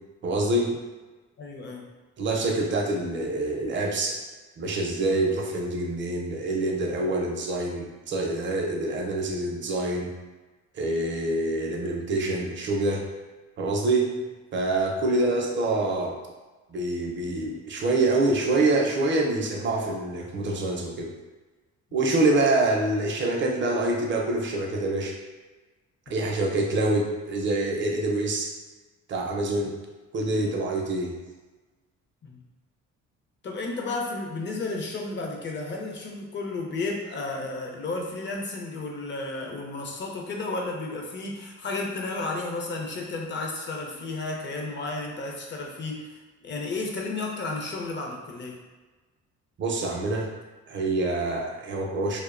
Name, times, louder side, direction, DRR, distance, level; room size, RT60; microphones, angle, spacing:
voice 1, 0.2-0.8 2.2-4.2 4.6-10.1 10.7-13.0 13.6-14.1 14.5-16.2 16.7-21.1 21.9-25.2 26.1-28.5 29.1-29.8 30.1-31.2 49.6-50.3 50.7-52.2, right 2 dB, 40° right, 1 dB, 0.5 m, -26 dB
voice 2, 1.4-1.9 15.1-15.3 26.1-26.2 32.2-32.4 33.4-48.6, left 3 dB, 40° left, 0 dB, 0.5 m, -33 dB
2.5 x 2.1 x 2.4 m, 1.2 s
cardioid pair, 90°, 30 cm